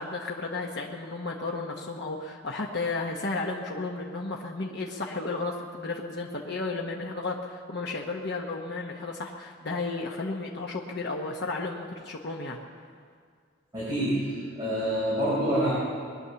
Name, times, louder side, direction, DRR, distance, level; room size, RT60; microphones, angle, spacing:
voice 1, 0.0-12.6, left 3 dB, 55° left, -1 dB, 1.1 m, -33 dB
voice 2, 13.7-15.7, right 1 dB, 20° right, -10 dB, 4.7 m, -27 dB
21.5 x 9.7 x 7.0 m, 2.1 s
head